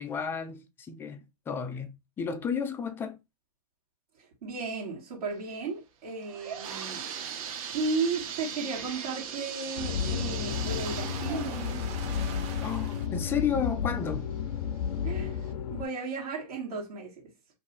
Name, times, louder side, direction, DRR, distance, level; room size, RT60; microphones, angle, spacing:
voice 1, 0.0-3.2 12.6-14.3, left 7 dB, 10° left, 0.3 m, -32 dB
voice 2, 4.1-7.0 7.7-12.0 15.0-17.2, right 4 dB, 75° right, 1.6 m, -35 dB
sound 1, 6.0-13.7 14.1-14.2 15.0-15.1 15.5-15.6, right 7 dB, 60° right, 1.0 m, -40 dB
sound 2, 6.6-13.1, right 7 dB, 30° right, 0.8 m, -45 dB
sound 3, 9.8-15.9, left 7 dB, 85° left, 0.5 m, -32 dB
2.6 x 2.3 x 4.0 m
hypercardioid pair, 135°, 20 cm